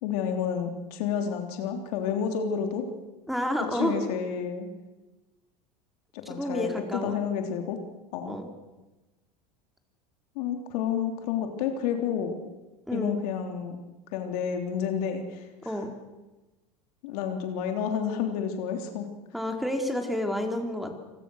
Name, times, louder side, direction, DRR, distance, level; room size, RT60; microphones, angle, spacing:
voice 1, 0.0-2.9 3.8-4.7 6.1-7.8 8.1-8.4 10.4-12.3 12.9-13.8 14.1-15.8 17.0-19.1, left 7 dB, 70° left, 5 dB, 3.5 m, -30 dB
voice 2, 3.3-4.0 6.3-7.1 8.3-8.5 12.9-13.2 15.6-15.9 19.3-21.0, left 1 dB, ahead, 4 dB, 3.9 m, -30 dB
28.0 x 19.5 x 6.5 m, 1.1 s
hypercardioid pair, 90°, 21 cm